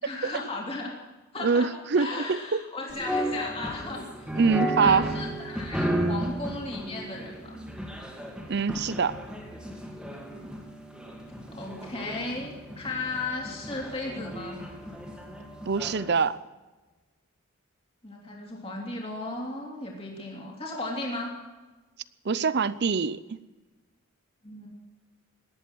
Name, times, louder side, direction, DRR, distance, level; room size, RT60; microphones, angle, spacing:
voice 1, 0.0-0.9 1.3-4.3 4.8-7.6 11.5-14.6 18.0-21.3 24.4-24.7, left 2 dB, 25° left, -2 dB, 3.2 m, -35 dB
voice 2, 1.4-2.6 4.4-5.1 8.5-9.2 15.7-16.4 22.2-23.4, right 5 dB, 50° right, 17 dB, 0.6 m, -24 dB
sound 1, 2.9-16.2, equal, 5° right, 2.6 m, -34 dB
18.0 x 11.5 x 6.2 m, 1.2 s
head